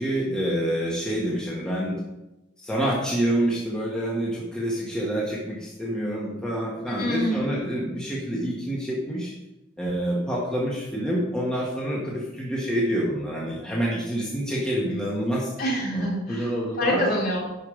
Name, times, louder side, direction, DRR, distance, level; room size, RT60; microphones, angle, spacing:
voice 1, 0.0-2.0 2.6-9.3 9.8-15.5 15.9-17.1, right 1 dB, 5° left, -5 dB, 1.7 m, -27 dB
voice 2, 7.0-7.4 15.6-17.4, equal, 50° left, -5 dB, 3.9 m, -26 dB
12.0 x 5.4 x 5.2 m, 0.98 s
head